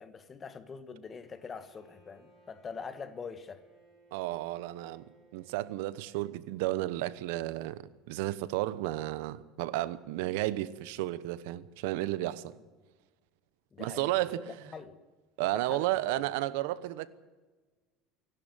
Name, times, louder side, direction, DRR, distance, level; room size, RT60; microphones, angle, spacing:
voice 1, 0.0-3.6 13.7-14.4 14.7-15.0 15.4-16.2, left 5 dB, 20° left, 1.3 m, -44 dB
Bowed string instrument, 1.2-5.9, right 2 dB, 10° right, 6.5 m, -63 dB
voice 2, 4.1-5.0 5.3-12.5 13.8-14.4 15.4-17.1, right 16 dB, 85° right, 1.0 m, -32 dB
27.0 x 12.0 x 9.0 m
cardioid pair, 165°, 0 cm